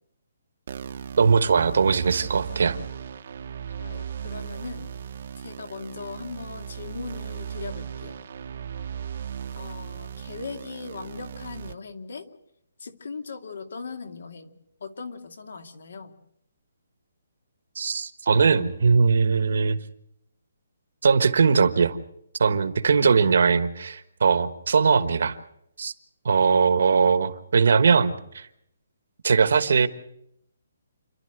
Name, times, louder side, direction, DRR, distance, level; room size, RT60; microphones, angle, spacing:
sound 1, 0.7-11.7, right 8 dB, 45° right, 1.0 m, -37 dB
voice 1, 1.2-2.8 17.7-19.8 21.0-22.0 22.4-25.4 25.8-25.9 26.2-28.5 29.2-29.9, right 5 dB, 60° right, 11 dB, 1.4 m, -20 dB
voice 2, 3.8-4.9 5.4-8.2 9.6-12.3 12.8-16.1, left 4 dB, 70° left, 6 dB, 2.3 m, -39 dB
29.0 x 12.0 x 7.9 m, 0.76 s
hypercardioid pair, 175°, 0 cm